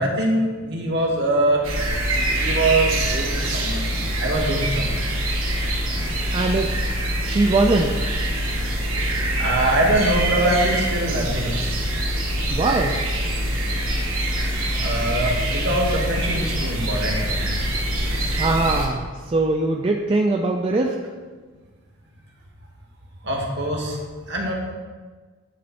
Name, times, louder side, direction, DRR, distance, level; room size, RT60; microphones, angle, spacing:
voice 1, 0.0-1.7 2.0-3.8 4.2-5.0 9.4-11.5 14.7-17.6 23.2-24.0 24.3-24.5, right 1 dB, 55° right, 0 dB, 1.2 m, -23 dB
sound 1, 1.6-18.9, right 1 dB, 80° right, 1.2 m, -24 dB
voice 2, 6.3-6.9 7.2-8.0 12.5-13.0 18.4-21.0, right 2 dB, 25° right, 1 dB, 0.3 m, -21 dB
9.4 x 3.2 x 4.2 m, 1.4 s
head